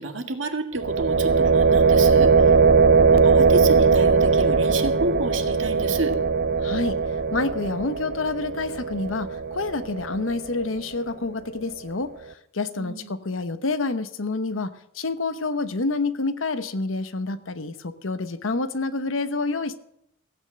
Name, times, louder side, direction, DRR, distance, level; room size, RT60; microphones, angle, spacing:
voice 1, 0.0-2.6 3.0-6.1 12.8-13.2, right 2 dB, 65° right, 5 dB, 1.9 m, -30 dB
sound 1, 0.8-10.6, right 5 dB, 50° right, 0.6 m, -20 dB
voice 2, 6.6-7.0 7.3-19.8, left 3 dB, 75° left, 12 dB, 1.0 m, -28 dB
15.5 x 9.1 x 7.5 m, 0.76 s
head